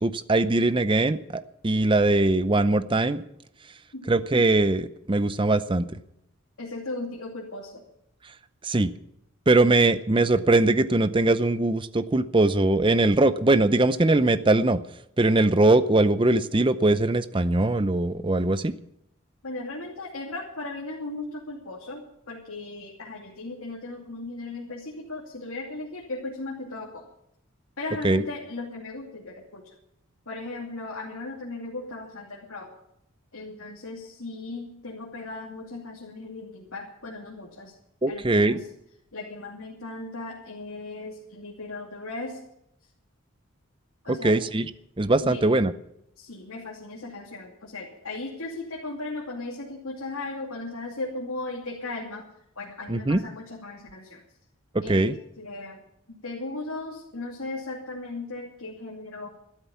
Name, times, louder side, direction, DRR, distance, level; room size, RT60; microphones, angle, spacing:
voice 1, 0.0-3.2 4.1-6.0 8.6-8.9 9.5-14.8 15.2-18.7 28.0-28.2 38.0-38.6 44.1-44.7 45.0-45.7 52.9-53.2 54.9-55.2, right 2 dB, 25° right, 13 dB, 0.6 m, -21 dB
voice 2, 6.6-7.8 19.4-27.0 27.8-29.7 30.3-32.7 33.3-37.7 38.1-38.6 39.1-42.4 44.0-44.4 45.2-45.4 46.2-52.3 52.6-54.2 54.8-55.1 55.4-55.8 56.1-59.3, left 2 dB, 80° left, -3 dB, 2.7 m, -37 dB
14.0 x 12.5 x 7.0 m, 0.78 s
head